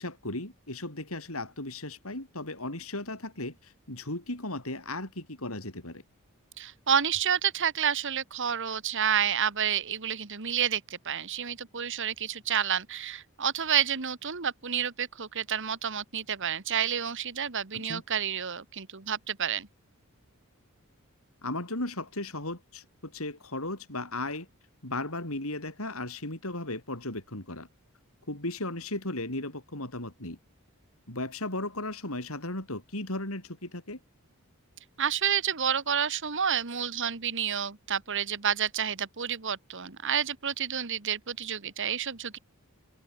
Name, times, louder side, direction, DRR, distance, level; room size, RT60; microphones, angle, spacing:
voice 1, 0.0-6.0 17.7-18.0 21.4-24.5 24.8-27.7 28.3-30.4 31.1-34.0, left 2 dB, 70° left, 6.4 m, -36 dB
voice 2, 6.6-19.7 35.0-42.4, right 8 dB, 55° right, 1.6 m, -29 dB
head